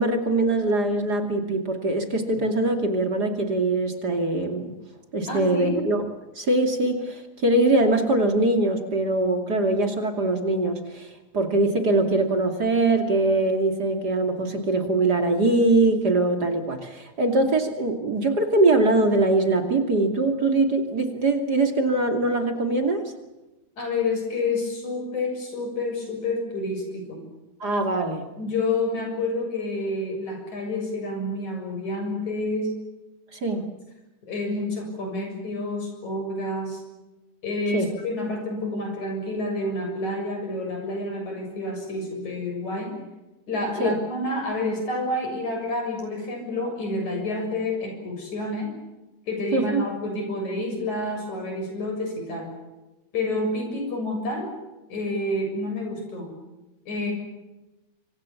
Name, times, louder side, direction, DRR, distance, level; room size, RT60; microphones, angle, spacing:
voice 1, 0.0-4.7 5.1-6.0 6.4-11.1 11.3-23.0 27.6-28.3 33.3-33.7 37.7-37.9 43.8-44.0 49.5-49.8, right 2 dB, 35° right, 5 dB, 2.9 m, -22 dB
voice 2, 5.3-5.8 23.8-27.2 28.4-32.7 34.2-36.8 37.4-43.0 43.5-48.7 49.3-52.5 53.1-54.5 54.9-56.3 56.9-57.1, left 2 dB, 75° left, 3 dB, 8.2 m, -29 dB
26.5 x 25.5 x 7.2 m, 1.0 s
omnidirectional pair, 3.3 m